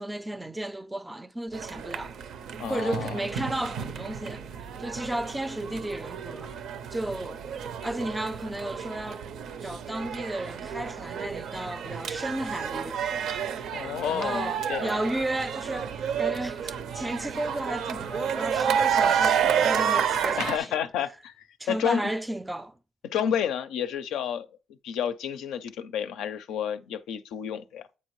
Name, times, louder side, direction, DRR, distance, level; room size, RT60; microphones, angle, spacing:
voice 1, 0.0-2.2 2.7-4.5 4.8-6.5 6.9-7.4 7.8-9.3 9.6-13.0 14.1-15.9 16.2-20.7 21.6-22.7, right 1 dB, 10° right, 0.3 m, -33 dB
sound 1, 1.5-20.6, right 7 dB, 75° right, 0.5 m, -30 dB
voice 2, 2.6-3.2 13.7-15.0 20.4-22.1 23.1-24.5 24.8-27.8, left 8 dB, 85° left, 0.4 m, -30 dB
8.4 x 4.4 x 3.1 m
cardioid pair, 90°, 0 cm